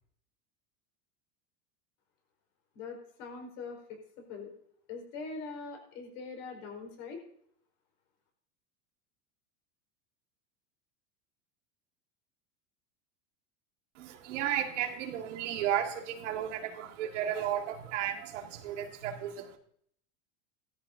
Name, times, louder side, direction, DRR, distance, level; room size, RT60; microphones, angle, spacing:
voice 1, 2.7-4.5 4.9-7.2, left 4 dB, 55° left, 2 dB, 4.6 m, -43 dB
voice 2, 14.0-19.6, right 10 dB, 90° right, 3 dB, 1.9 m, -34 dB
17.0 x 13.5 x 2.7 m, 0.65 s
supercardioid pair, 150°, 35 cm